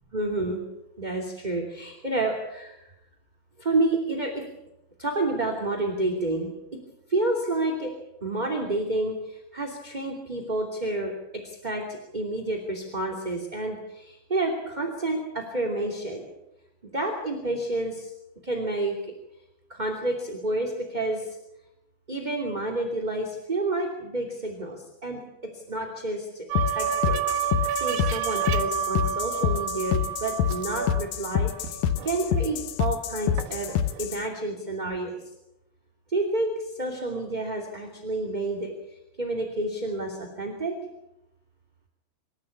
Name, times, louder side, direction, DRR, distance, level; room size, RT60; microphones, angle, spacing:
voice 1, 0.1-0.6 1.0-2.8 3.6-4.4 5.0-6.5 7.1-7.9 8.2-11.1 11.4-11.8 12.1-16.2 16.8-18.1 18.4-18.9 19.7-21.4 22.1-25.2 25.7-27.2 27.7-31.8 32.0-33.7 34.0-35.1 36.1-38.7 39.2-40.8, right 2 dB, 15° right, 2 dB, 2.3 m, -29 dB
sound 1, 26.5-34.2, left 9 dB, 70° left, 2.0 m, -27 dB
sound 2, 26.5-32.7 33.1-34.1, right 8 dB, 85° right, 3.6 m, -30 dB
26.5 x 13.0 x 8.4 m, 0.89 s
omnidirectional pair, 4.6 m